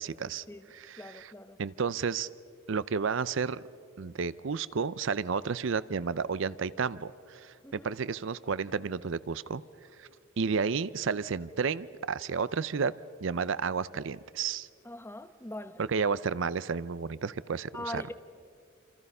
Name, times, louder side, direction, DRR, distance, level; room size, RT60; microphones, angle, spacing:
voice 1, 0.0-0.4 0.7-1.3 1.6-2.3 2.7-3.6 4.0-9.6 10.0-10.1 10.4-12.9 13.2-14.7 15.8-18.1, right 5 dB, 60° right, 0.5 m, -32 dB
voice 2, 1.0-1.6 7.6-7.9 14.8-15.8 17.7-18.1, left 1 dB, 10° left, 0.8 m, -41 dB
27.5 x 27.5 x 5.5 m
head